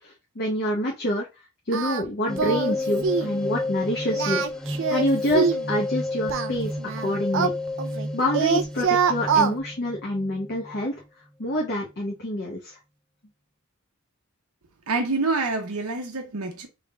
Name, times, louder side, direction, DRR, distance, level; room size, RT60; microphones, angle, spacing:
voice 1, 0.0-1.3 1.7-4.4 4.9-6.7 7.0-7.5 8.1-11.0 11.4-12.8, left 1 dB, 50° left, 0.9 m, -27 dB
Singing, 1.7-2.0 2.4-2.8 3.0-3.3 4.1-5.7 6.3-8.1 8.3-9.6, right 6 dB, 60° right, 0.4 m, -24 dB
sound 1, 2.3-10.8, left 2 dB, 5° left, 0.3 m, -31 dB
voice 2, 14.9-16.7, right 3 dB, 90° right, 0.8 m, -26 dB
3.5 x 3.3 x 2.2 m
head